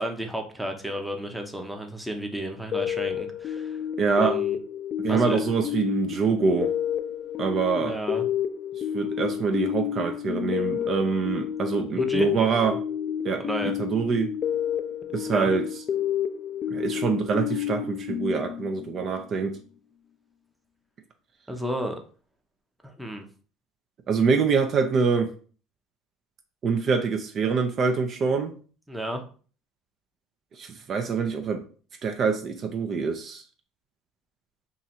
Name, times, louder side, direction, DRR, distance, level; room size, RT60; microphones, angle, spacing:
voice 1, 0.0-3.8 4.1-4.6 5.1-5.4 7.8-8.2 11.9-12.3 13.4-13.7 15.3-15.5 21.5-22.0 22.8-23.2 28.9-29.2, equal, 5° right, 3 dB, 0.7 m, -32 dB
sound 1, 2.7-19.1, left 9 dB, 45° left, 0.3 m, -30 dB
voice 2, 4.0-4.3 5.0-6.7 7.4-8.0 8.9-12.8 13.2-13.4 13.8-14.3 15.1-15.7 16.7-19.6 24.1-25.3 26.6-28.5 30.6-31.6 32.0-33.4, right 5 dB, 45° right, 6 dB, 0.5 m, -25 dB
2.8 x 2.4 x 4.2 m, 0.40 s
supercardioid pair, 90°, 0 cm